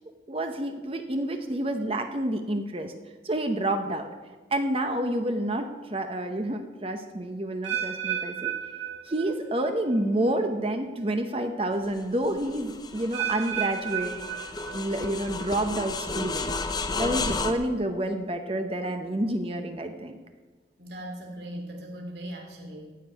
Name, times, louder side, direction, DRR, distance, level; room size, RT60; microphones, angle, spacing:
voice 1, 0.3-2.9 3.2-4.1 4.5-8.5 9.0-16.5 16.9-20.2, right 1 dB, 30° right, 6 dB, 0.8 m, -29 dB
sound 1, 7.6-9.7 9.9-10.4 11.0-11.1 13.1-15.1 15.4-15.8 16.5-16.6, right 10 dB, 90° right, 3.8 m, -33 dB
sound 2, 11.8-17.5, left 3 dB, 20° left, 0.7 m, -33 dB
voice 2, 20.8-22.9, equal, 60° right, 1 dB, 2.9 m, -39 dB
15.0 x 5.4 x 9.5 m, 1.3 s
head